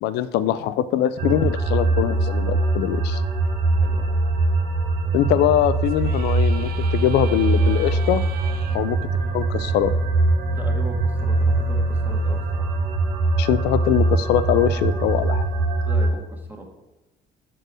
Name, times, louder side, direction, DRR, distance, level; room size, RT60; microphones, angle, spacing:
voice 1, 0.0-3.2 5.1-8.3 8.7-9.0 9.3-9.9 13.4-15.4, left 11 dB, 80° left, 13 dB, 0.4 m, -22 dB
sound 1, 1.2-16.1, right 2 dB, 85° right, 1.1 m, -22 dB
voice 2, 3.7-4.1 8.7-8.9 10.5-12.7 15.8-16.7, right 1 dB, 10° right, 2 dB, 1.4 m, -39 dB
sound 2, 5.9-8.8, right 10 dB, 65° right, 0.5 m, -40 dB
6.4 x 4.4 x 6.2 m, 1.0 s
cardioid pair, 110°, 17 cm